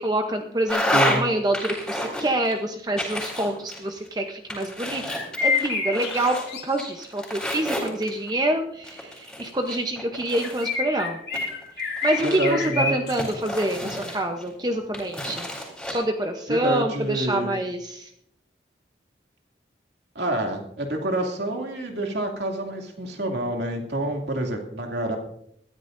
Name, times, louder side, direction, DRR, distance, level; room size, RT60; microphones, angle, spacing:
voice 1, 0.0-5.0 5.4-6.4 6.6-11.2 11.8-15.5 15.9-18.1, right 1 dB, 20° right, 4 dB, 0.8 m, -26 dB
sound 1, 0.7-1.2 1.5-2.5 3.0-4.1 4.5-6.4 6.8-8.3 8.8-10.7 11.3-12.6 13.2-14.5 14.9-15.9, left 1 dB, 5° left, 3.7 m, -29 dB
voice 2, 0.9-1.3 12.2-12.9 16.5-17.6 20.1-25.2, right 1 dB, 75° right, 1 dB, 2.5 m, -27 dB
sound 2, 5.1-6.9 10.4-13.3, left 4 dB, 70° left, 2.4 m, -28 dB
21.0 x 13.5 x 2.6 m, 0.71 s
head